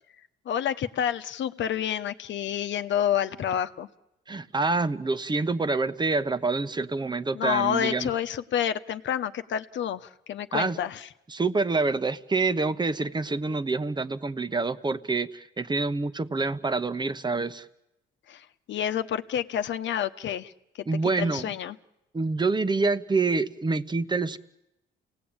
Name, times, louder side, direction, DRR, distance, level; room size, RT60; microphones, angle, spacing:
voice 1, 0.5-3.9 7.3-11.1 18.3-20.5 21.2-21.8, left 9 dB, 70° left, 10 dB, 1.1 m, -29 dB
voice 2, 4.3-8.1 10.5-10.8 11.3-17.7 20.9-21.5 22.1-24.4, right 3 dB, 20° right, 13 dB, 1.1 m, -27 dB
29.0 x 18.0 x 8.9 m, 0.92 s
cardioid pair, 90°, 20 cm